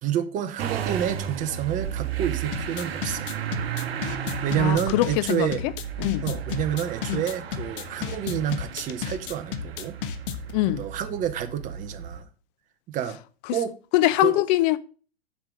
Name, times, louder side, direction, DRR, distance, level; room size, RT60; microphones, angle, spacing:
voice 1, 0.0-3.3 4.4-5.6 6.2-9.9 10.8-12.3 12.9-13.2 13.5-13.7 14.2-14.3, right 10 dB, 25° right, 0.8 m, -28 dB
Motor vehicle (road) / Engine starting, 0.6-12.2, right 9 dB, 70° right, 1.1 m, -34 dB
sound 1, 2.5-10.5, left 9 dB, 55° left, 1.1 m, -33 dB
voice 2, 4.6-5.7 6.0-6.3 7.1-7.2 10.5-10.9 13.4-13.6 13.9-14.8, left 16 dB, 40° left, 0.6 m, -23 dB
7.4 x 4.9 x 6.0 m
hypercardioid pair, 115°, 32 cm